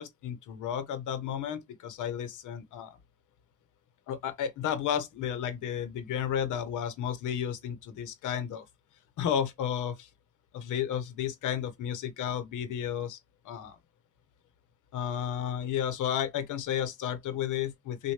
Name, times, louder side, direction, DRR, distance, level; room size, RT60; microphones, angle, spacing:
voice 1, 0.0-3.0 4.1-8.6 9.2-10.1 10.5-13.2 13.4-13.8 14.9-18.1, left 9 dB, 85° left, 1.1 m, -32 dB
6.4 x 2.5 x 3.2 m
cardioid pair, 90°, 30 cm